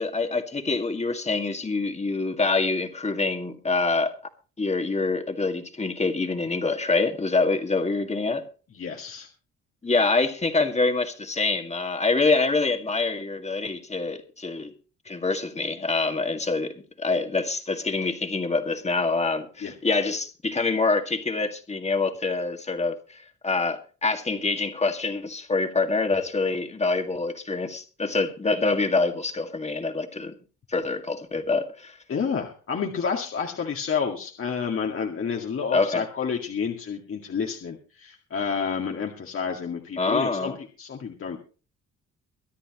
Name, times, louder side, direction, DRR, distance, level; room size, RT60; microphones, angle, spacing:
voice 1, 0.0-4.2 4.6-8.5 9.8-14.7 15.1-30.4 30.7-32.0 35.7-36.0 40.0-40.6, left 3 dB, 20° left, 2.1 m, -25 dB
voice 2, 8.7-9.3 19.6-19.7 32.1-40.5 40.8-41.4, left 6 dB, 45° left, 2.1 m, -29 dB
24.0 x 10.0 x 3.1 m
cardioid pair, 90°, 30 cm